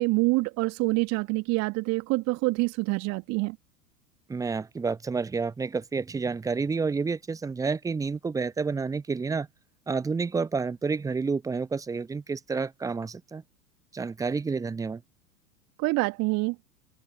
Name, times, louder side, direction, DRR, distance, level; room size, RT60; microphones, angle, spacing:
voice 1, 0.0-3.6 15.8-16.6, right 25 dB, 35° right, 1.7 m, -26 dB
voice 2, 4.3-9.5 9.9-13.4 13.9-15.0, right 4 dB, 5° right, 0.9 m, -29 dB
figure-of-eight pair, 95°, 48 cm